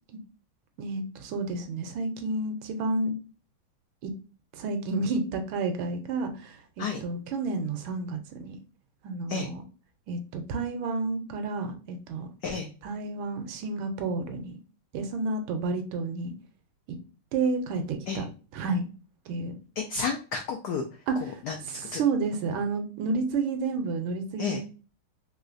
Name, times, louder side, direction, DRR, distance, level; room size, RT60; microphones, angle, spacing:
voice 1, 0.8-3.2 4.0-4.1 4.5-8.6 9.0-9.6 10.1-12.3 12.8-14.6 14.9-16.3 16.9-17.0 17.3-18.2 18.5-18.9 19.3-19.5 21.1-21.4 21.7-24.6, right 3 dB, 80° right, 7 dB, 1.4 m, -30 dB
voice 2, 19.8-20.8 21.2-22.0 24.4-24.6, left 5 dB, 85° left, 4 dB, 0.8 m, -31 dB
3.6 x 3.1 x 2.4 m, 0.35 s
omnidirectional pair, 2.3 m